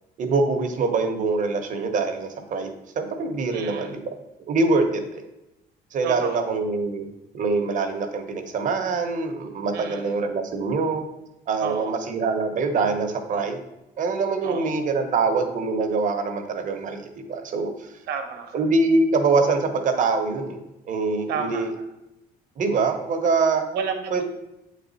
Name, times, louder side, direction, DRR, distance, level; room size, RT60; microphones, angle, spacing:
voice 1, 0.2-4.1 4.5-5.2 5.9-7.1 7.3-11.0 11.5-13.6 14.0-17.9 18.5-20.6 20.8-21.7 22.6-23.6 24.1-24.2, right 3 dB, 50° right, 5 dB, 1.0 m, -24 dB
voice 2, 3.5-3.9 6.0-6.5 9.7-10.1 11.6-12.0 14.4-14.8 18.1-18.6 21.3-21.6 23.7-24.2, right 6 dB, 75° right, 5 dB, 1.1 m, -31 dB
7.9 x 4.1 x 4.1 m, 0.93 s
cardioid pair, 110°, 17 cm